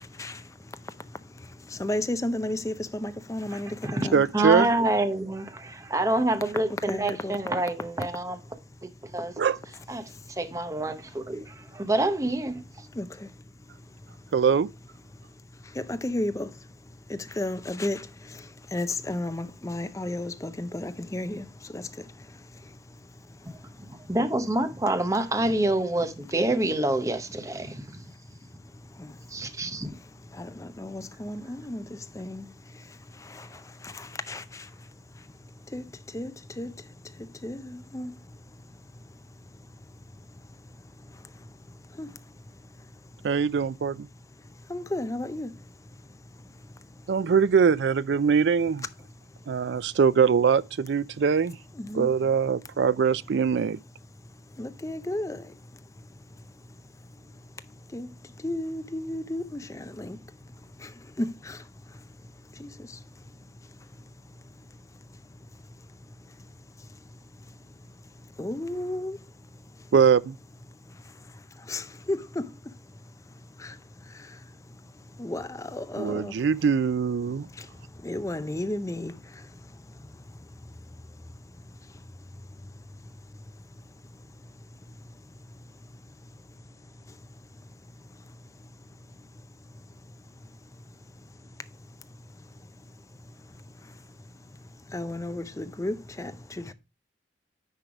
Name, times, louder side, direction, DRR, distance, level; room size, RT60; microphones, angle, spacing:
voice 1, 0.0-4.5 6.9-7.4 10.0-10.3 12.9-14.3 15.1-24.1 27.9-28.1 28.4-43.3 44.6-47.1 49.3-49.9 51.8-52.1 54.2-69.9 70.7-76.5 77.5-86.7 86.9-87.9 88.2-96.7, left 1 dB, 15° left, 0.5 m, -37 dB
voice 2, 3.5-4.1 4.3-8.4 8.8-9.3 9.9-12.9 23.8-28.0 29.3-30.0, right 1 dB, 15° right, 0.7 m, -27 dB
voice 3, 4.1-4.7 9.4-9.6 14.3-14.7 43.2-44.1 47.1-48.8 49.5-51.6 51.9-53.8 69.9-70.4 76.0-77.5, right 6 dB, 65° right, 0.4 m, -22 dB
9.9 x 3.4 x 4.8 m
head